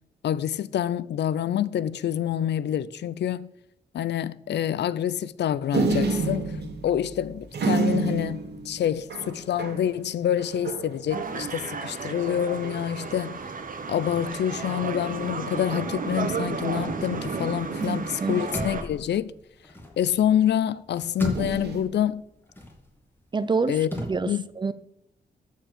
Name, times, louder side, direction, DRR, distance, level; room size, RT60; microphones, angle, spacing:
voice 1, 0.2-3.5 3.9-6.5 6.8-13.4 13.9-19.3 20.0-22.2 23.7-23.9 24.3-24.4, left 10 dB, 80° left, 0.5 m, -27 dB
sound 1, 5.7-11.7 12.1-12.2 12.4-12.9 13.7-14.3 15.7-16.2 17.8-19.1 21.3-21.8, right 4 dB, 75° right, 2.0 m, -30 dB
sound 2, 11.1-18.8, right 4 dB, 50° right, 1.3 m, -32 dB
sound 3, 16.3-17.9 18.2-20.4 20.7-24.1, equal, 10° left, 2.3 m, -36 dB
voice 2, 17.8-18.5 23.3-24.7, right 4 dB, 25° right, 0.5 m, -28 dB
13.5 x 4.6 x 6.8 m
wide cardioid pair, 105°, 18 cm